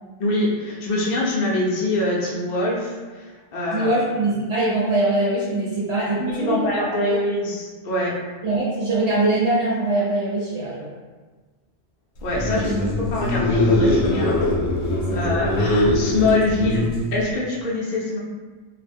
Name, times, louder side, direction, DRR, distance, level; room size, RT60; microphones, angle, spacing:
voice 1, 0.2-4.0 6.2-8.2 12.2-14.5 15.1-18.2, left 2 dB, 55° left, -4 dB, 0.5 m, -24 dB
voice 2, 3.7-6.8 8.4-10.9 12.5-12.6 15.1-15.6, right 2 dB, 80° right, -8 dB, 1.0 m, -23 dB
sound 1, 12.2-17.3, left 1 dB, 80° left, 0.9 m, -21 dB
2.4 x 2.1 x 3.3 m, 1.3 s
omnidirectional pair, 1.1 m